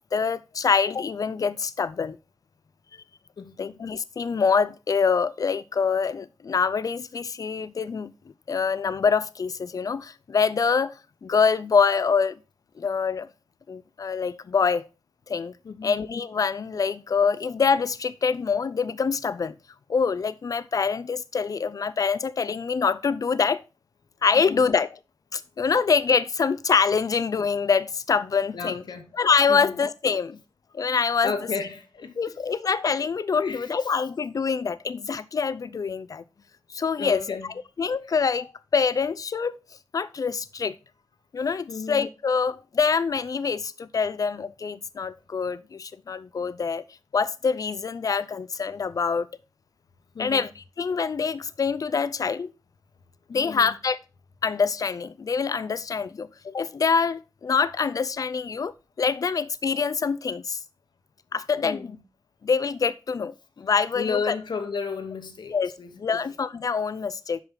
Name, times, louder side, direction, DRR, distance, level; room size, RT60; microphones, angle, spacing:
voice 1, 0.1-2.2 3.6-8.1 8.5-10.9 11.2-12.4 12.8-13.3 13.7-14.8 15.3-15.5 15.8-19.5 19.9-23.6 24.2-25.0 25.3-28.8 29.2-30.4 30.7-31.3 32.2-36.2 36.7-37.4 37.8-38.5 38.7-39.6 39.9-40.8 41.3-46.8 47.1-49.3 50.2-50.5 50.8-52.5 53.3-54.0 54.4-58.7 59.0-60.6 61.3-62.0 62.4-64.3 65.5-67.4, left 5 dB, 50° left, 0.4 m, -25 dB
voice 2, 3.4-3.8 15.6-16.0 24.5-24.7 28.5-29.1 29.5-29.8 31.2-32.1 33.4-33.9 37.0-37.5 41.7-42.1 50.1-50.5 53.3-53.7 61.6-61.9 63.9-66.3, left 5 dB, 70° left, 1.0 m, -33 dB
5.9 x 5.6 x 3.8 m
wide cardioid pair, 145°, 8 cm